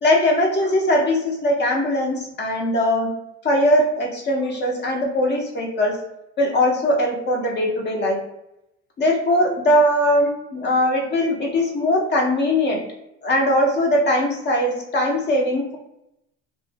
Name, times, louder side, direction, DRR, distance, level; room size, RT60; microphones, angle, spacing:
voice 1, 0.0-3.1 3.4-6.0 6.4-8.2 9.0-12.8 13.2-15.8, left 1 dB, 35° left, 0 dB, 0.7 m, -20 dB
2.6 x 2.1 x 3.3 m, 0.84 s
cardioid pair, 120°, 30 cm